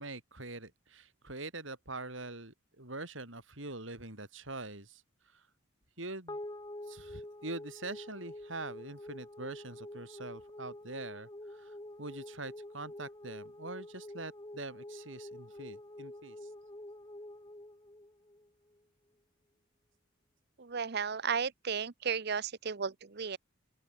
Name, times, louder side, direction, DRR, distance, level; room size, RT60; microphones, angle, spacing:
voice 1, 0.0-5.5 6.0-6.4 6.8-16.5, right 2 dB, 75° right, 7.3 m, -44 dB
sound 1, 6.3-18.8, left 1 dB, 20° left, 1.7 m, -47 dB
voice 2, 20.6-23.4, right 6 dB, 55° right, 0.8 m, -34 dB
open air
head